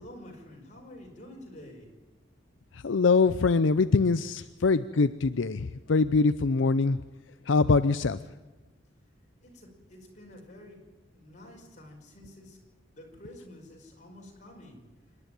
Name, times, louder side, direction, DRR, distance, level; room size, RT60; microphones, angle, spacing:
voice 1, 0.0-1.9 4.4-4.5 9.4-10.9 11.1-12.6 12.9-14.8, left 1 dB, 40° left, 0 dB, 5.2 m, -49 dB
voice 2, 2.7-7.0 7.5-8.2, left 4 dB, 80° left, 12 dB, 0.6 m, -23 dB
26.5 x 11.0 x 9.0 m, 1.2 s
head